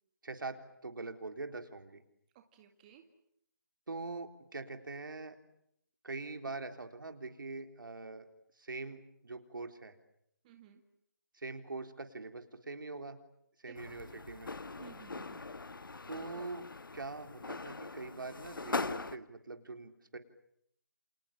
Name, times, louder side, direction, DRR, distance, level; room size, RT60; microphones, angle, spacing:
voice 1, 0.2-0.6 0.8-2.0 3.9-5.4 6.0-8.3 8.6-9.9 11.3-13.2 13.6-14.5 16.1-16.7 16.9-20.2, right 3 dB, 70° right, 6 dB, 3.7 m, -43 dB
voice 2, 2.5-3.1 10.4-10.8 13.7-14.1 14.8-15.5, right 10 dB, 20° right, 5 dB, 2.0 m, -57 dB
sound 1, 13.8-19.2, left 3 dB, 75° left, 1.4 m, -41 dB
29.5 x 27.5 x 7.2 m, 0.73 s
figure-of-eight pair, 155°, 11 cm